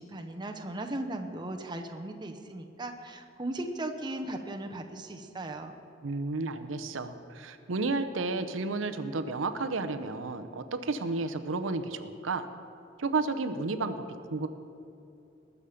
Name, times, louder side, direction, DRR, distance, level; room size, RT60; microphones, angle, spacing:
voice 1, 0.0-5.7, right 1 dB, 25° right, 4 dB, 0.8 m, -37 dB
voice 2, 6.0-12.5 13.0-14.0 14.3-14.5, right 3 dB, 90° right, 9 dB, 0.7 m, -32 dB
19.5 x 7.2 x 5.0 m, 2.7 s
head